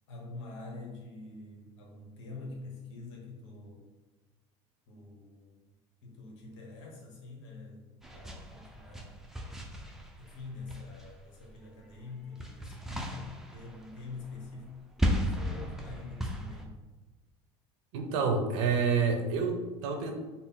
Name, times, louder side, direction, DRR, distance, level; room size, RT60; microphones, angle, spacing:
voice 1, 0.1-3.8 4.9-5.5 6.0-7.8 8.1-9.1 10.2-13.2 13.5-14.7 15.1-16.7, left 3 dB, 75° left, -1 dB, 1.1 m, -45 dB
sound 1, 8.0-11.6 11.9-16.6, equal, 5° right, 0.5 m, -36 dB
voice 2, 17.9-20.1, right 5 dB, 80° right, 4 dB, 0.7 m, -28 dB
4.0 x 2.0 x 3.7 m, 1.2 s
supercardioid pair, 90°, 15 cm